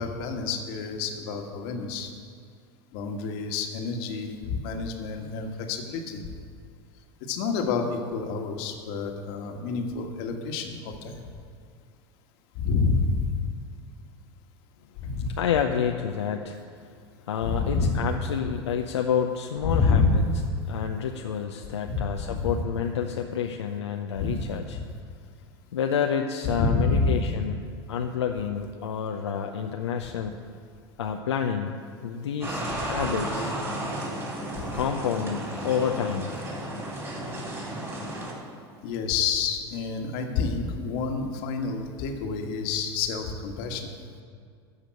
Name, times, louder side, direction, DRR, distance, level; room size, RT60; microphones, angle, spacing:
voice 1, 0.0-2.1 2.9-6.2 7.3-11.2 12.5-13.3 15.0-15.3 17.4-17.9 19.6-20.3 21.9-22.5 24.2-24.4 24.7-24.8 26.4-27.2 34.5-34.7 38.8-43.9, left 4 dB, 60° left, 4 dB, 1.5 m, -28 dB
voice 2, 15.4-16.9 17.3-20.2 20.7-24.8 25.7-30.4 31.0-33.5 34.7-36.6, left 7 dB, 85° left, 3 dB, 0.7 m, -29 dB
sound 1, 32.4-38.3, right 1 dB, 20° right, 3.3 m, -33 dB
13.5 x 5.2 x 8.7 m, 2.2 s
hypercardioid pair, 90°, 14 cm